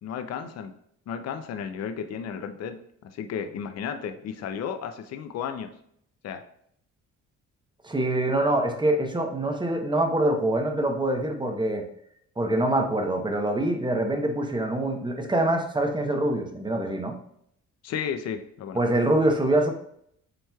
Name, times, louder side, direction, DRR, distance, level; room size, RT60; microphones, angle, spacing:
voice 1, 0.0-0.7 1.1-5.7 6.2-6.4 17.8-18.8, left 7 dB, 55° left, 8 dB, 0.5 m, -33 dB
voice 2, 7.8-11.8 12.4-17.2 18.7-19.7, right 1 dB, 15° right, 3 dB, 0.8 m, -25 dB
7.7 x 3.0 x 2.3 m, 0.69 s
cardioid pair, 90°, 30 cm